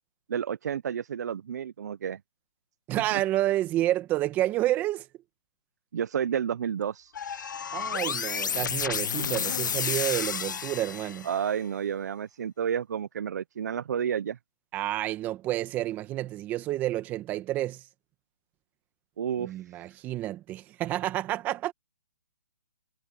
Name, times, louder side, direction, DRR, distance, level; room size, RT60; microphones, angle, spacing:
voice 1, 0.3-2.2 3.1-3.2 5.9-7.1 11.2-14.4 19.2-19.9, right 8 dB, 55° right, 0.8 m, -31 dB
voice 2, 2.9-5.1 7.7-11.3 14.7-17.8 19.4-21.7, right 14 dB, 15° right, 1.6 m, -29 dB
sound 1, 7.1-11.4, left 7 dB, 65° left, 1.3 m, -31 dB
hypercardioid pair, 160°, 11 cm